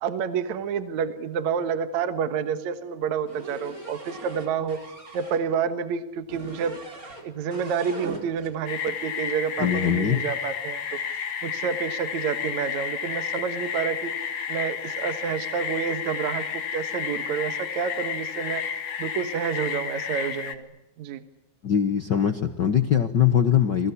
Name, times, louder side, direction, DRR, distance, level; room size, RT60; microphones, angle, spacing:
voice 1, 0.0-4.8 5.1-6.8 7.2-11.0 11.4-14.1 14.5-18.6 19.0-20.7 21.0-21.2, right 7 dB, 65° right, 10 dB, 2.5 m, -29 dB
sound 1, 3.3-5.4 6.3-7.3 7.5-8.5, right 2 dB, 25° right, 4.7 m, -40 dB
sound 2, 8.7-20.5, left 7 dB, 55° left, 2.8 m, -31 dB
voice 2, 9.6-10.2 21.6-23.9, left 9 dB, 75° left, 9 dB, 1.0 m, -22 dB
29.0 x 23.0 x 8.5 m, 0.95 s
omnidirectional pair, 3.9 m